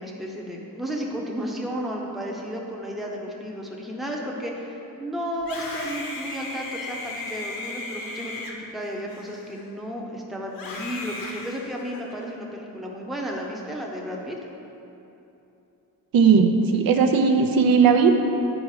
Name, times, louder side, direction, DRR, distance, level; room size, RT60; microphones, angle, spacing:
voice 1, 0.0-14.4, equal, ahead, -2 dB, 0.7 m, -33 dB
Screaming, 5.4-9.9 10.5-12.2, left 2 dB, 75° left, 1.1 m, -36 dB
voice 2, 16.1-18.1, right 5 dB, 80° right, 5 dB, 0.7 m, -17 dB
9.7 x 5.1 x 4.8 m, 2.9 s
wide cardioid pair, 175°, 34 cm